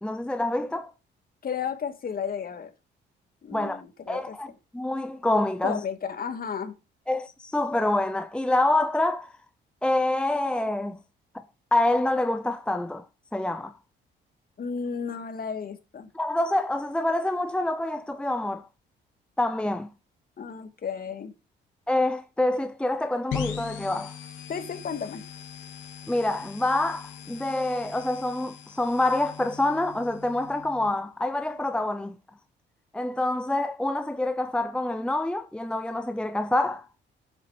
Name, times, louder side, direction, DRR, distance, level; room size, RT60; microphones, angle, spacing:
voice 1, 0.0-0.9 3.5-3.8 4.1-4.5 4.7-5.8 7.1-9.3 9.8-11.0 11.3-11.4 11.7-13.0 13.3-13.7 16.1-18.7 19.4-19.9 21.9-24.1 26.1-32.2 32.9-36.9, left 1 dB, 5° left, 0.7 m, -26 dB
voice 2, 1.4-2.7 3.4-4.4 5.6-6.7 14.6-16.1 20.4-21.3 24.5-25.2, left 6 dB, 45° left, 2.3 m, -33 dB
sound 1, 23.3-30.9, left 8 dB, 75° left, 2.9 m, -40 dB
10.5 x 8.4 x 5.2 m
cardioid pair, 90°, 20 cm